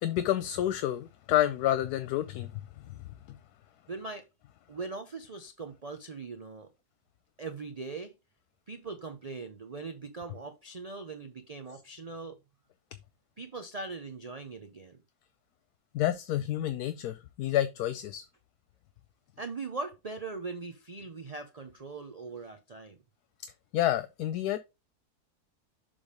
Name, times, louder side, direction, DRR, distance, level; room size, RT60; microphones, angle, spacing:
voice 1, 0.0-2.6 2.9-3.0 15.9-18.2 23.7-24.6, left 13 dB, 75° left, 1.1 m, -29 dB
voice 2, 3.9-4.3 4.7-6.7 7.4-8.1 8.7-12.4 13.4-15.0 19.4-23.0, right 3 dB, 50° right, 0.4 m, -40 dB
7.1 x 3.4 x 5.0 m
omnidirectional pair, 1.7 m